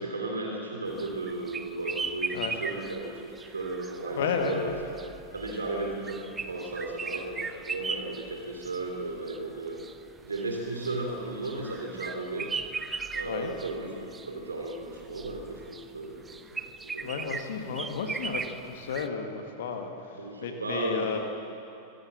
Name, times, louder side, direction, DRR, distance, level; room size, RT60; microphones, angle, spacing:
voice 1, 0.0-4.7 5.3-9.8 10.2-12.5 13.1-17.2 17.6-17.7 20.2-21.2, right 2 dB, 75° right, 0 dB, 3.0 m, -35 dB
sound 1, 0.9-19.1, right 4 dB, 15° right, 0.8 m, -38 dB
voice 2, 4.1-4.8 13.2-13.5 17.0-21.2, left 6 dB, 60° left, 4 dB, 2.0 m, -33 dB
25.0 x 16.5 x 7.3 m, 2.8 s
figure-of-eight pair, 90°, 0 cm